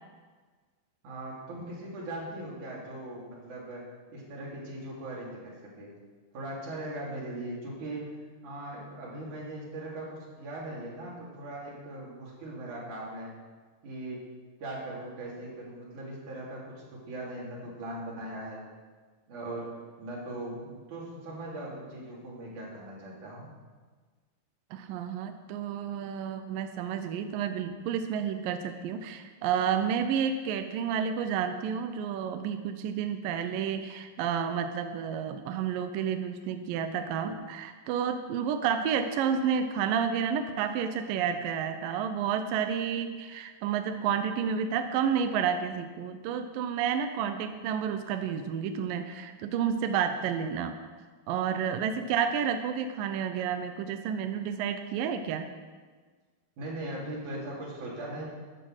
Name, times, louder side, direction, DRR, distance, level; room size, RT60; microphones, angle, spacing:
voice 1, 1.0-3.8 4.1-5.9 6.3-8.1 8.4-13.3 13.8-14.2 14.6-18.6 19.3-19.7 20.0-23.5 56.6-58.2, right 1 dB, 50° right, -5 dB, 4.7 m, -39 dB
voice 2, 24.7-50.7 51.3-55.5, right 7 dB, 75° right, 7 dB, 2.2 m, -30 dB
13.5 x 10.5 x 6.5 m, 1.4 s
omnidirectional pair, 4.5 m